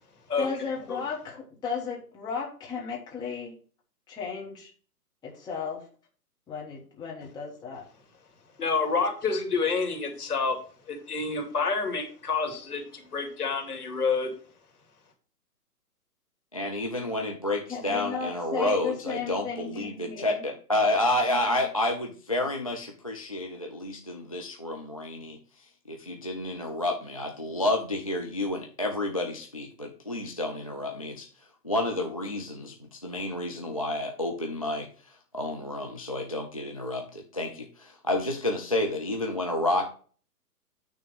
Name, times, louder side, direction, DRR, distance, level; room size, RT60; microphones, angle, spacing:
voice 1, 0.4-3.5 4.1-4.7 5.2-5.8 6.5-7.8 17.7-20.5, left 5 dB, 10° left, -2 dB, 1.3 m, -35 dB
voice 2, 8.6-10.6 10.9-14.3, left 4 dB, 70° left, 4 dB, 2.7 m, -28 dB
voice 3, 16.5-25.4 25.9-31.3 31.6-34.9 35.3-39.9, left 1 dB, 25° left, 1 dB, 0.4 m, -30 dB
9.2 x 3.4 x 6.8 m, 0.41 s
figure-of-eight pair, 135°, 48 cm